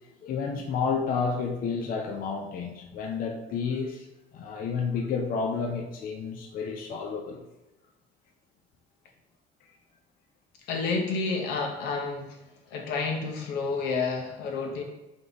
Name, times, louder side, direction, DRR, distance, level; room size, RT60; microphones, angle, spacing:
voice 1, 0.2-4.1 4.3-7.4, left 5 dB, 55° left, 3 dB, 0.6 m, -30 dB
voice 2, 10.7-12.4 12.7-14.8, left 4 dB, 90° left, 2 dB, 0.8 m, -30 dB
3.6 x 2.9 x 3.9 m, 1.0 s
cardioid pair, 110°, 17 cm